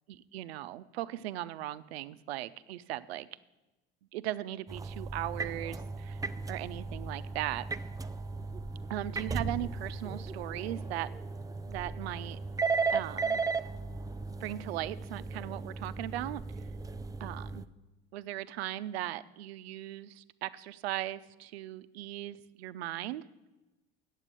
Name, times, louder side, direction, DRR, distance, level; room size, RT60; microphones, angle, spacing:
voice 1, 0.1-3.3 4.1-6.2 6.5-7.6 8.9-11.1 11.6-12.4 12.9-13.4 14.4-16.4 17.2-17.6 18.1-23.2, right 14 dB, 80° right, 15 dB, 0.6 m, -38 dB
sound 1, 4.7-17.6, right 4 dB, 10° right, 0.4 m, -36 dB
9.0 x 7.4 x 8.3 m, 1.0 s
hypercardioid pair, 75°, 31 cm